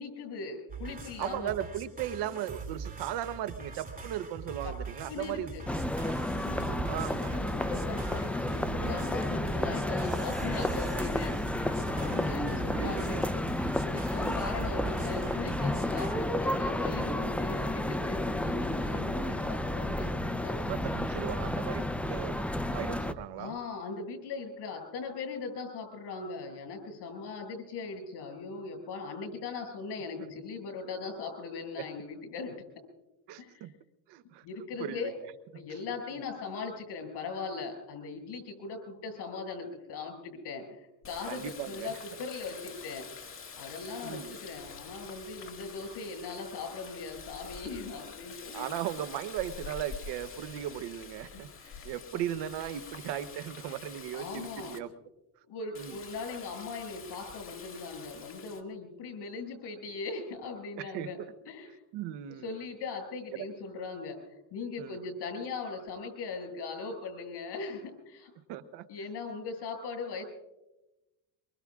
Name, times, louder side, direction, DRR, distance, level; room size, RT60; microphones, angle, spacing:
voice 1, 0.0-1.5 4.6-4.7 5.1-5.6 6.2-11.3 11.9-13.4 13.8-20.6 23.4-32.6 33.4-33.7 34.4-35.1 35.5-43.1 43.6-48.7 51.3-51.9 53.7-53.8 54.1-54.8 55.5-61.2 61.4-61.7 62.4-64.2 64.5-68.3 68.9-70.2, left 4 dB, 65° left, 4 dB, 6.6 m, -39 dB
sound 1, 0.7-16.1, right 4 dB, 20° right, 2.6 m, -43 dB
voice 2, 1.2-5.9 6.9-7.4 11.6-12.0 12.7-13.2 20.5-22.4 22.7-23.5 31.8-31.9 33.3-33.7 34.1-34.4 34.8-35.1 35.7-35.8 36.2-36.3 41.3-41.9 44.0-44.4 48.5-51.5 51.8-54.9 55.8-56.0 60.8-61.3 61.9-62.6 63.3-63.4 64.8-65.0 68.5-68.9, right 11 dB, 70° right, 13 dB, 1.0 m, -37 dB
sound 2, 5.7-23.1, left 1 dB, 5° left, 0.6 m, -31 dB
Water tap faucet, 41.0-54.8 55.7-58.6, left 5 dB, 30° left, 2.0 m, -47 dB
24.0 x 23.5 x 2.4 m, 0.98 s
cardioid pair, 105°, 42 cm